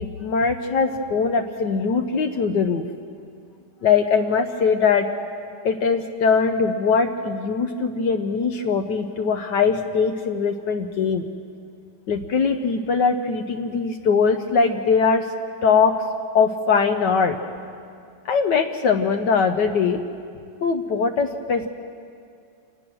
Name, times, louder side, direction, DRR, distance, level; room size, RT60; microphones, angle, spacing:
voice 1, 0.0-2.9 3.8-5.1 5.6-11.2 12.1-15.2 15.6-15.9 16.3-17.4 18.2-20.0 20.6-21.7, left 5 dB, 75° left, 5 dB, 1.5 m, -21 dB
27.5 x 20.0 x 6.2 m, 2.3 s
omnidirectional pair, 1.9 m